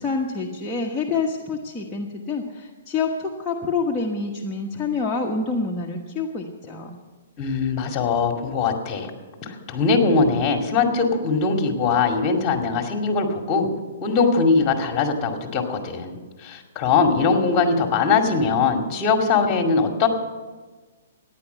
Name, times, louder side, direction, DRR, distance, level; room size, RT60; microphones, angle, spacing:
voice 1, 0.0-7.0, left 4 dB, 10° left, -4 dB, 1.3 m, -27 dB
voice 2, 7.4-9.1 9.4-13.7 14.0-20.1, left 4 dB, 25° left, 4 dB, 2.3 m, -21 dB
14.5 x 10.0 x 6.9 m, 1.3 s
hypercardioid pair, 135°, 0 cm